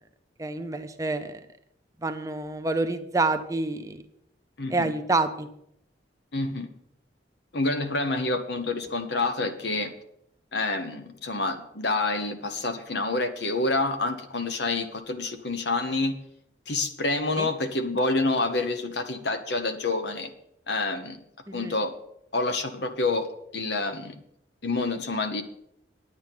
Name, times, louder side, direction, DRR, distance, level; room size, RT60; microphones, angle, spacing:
voice 1, 0.4-1.4 2.0-4.0 4.7-5.5 17.4-17.5 21.5-21.7, right 3 dB, 15° right, 8 dB, 0.6 m, -28 dB
voice 2, 4.6-4.9 6.3-6.7 7.5-9.9 10.5-16.2 16.7-20.3 20.7-21.2 21.5-21.9 22.3-23.3 23.5-24.2 24.6-25.4, left 2 dB, 65° left, 8 dB, 1.1 m, -28 dB
9.8 x 8.7 x 6.0 m, 0.74 s
head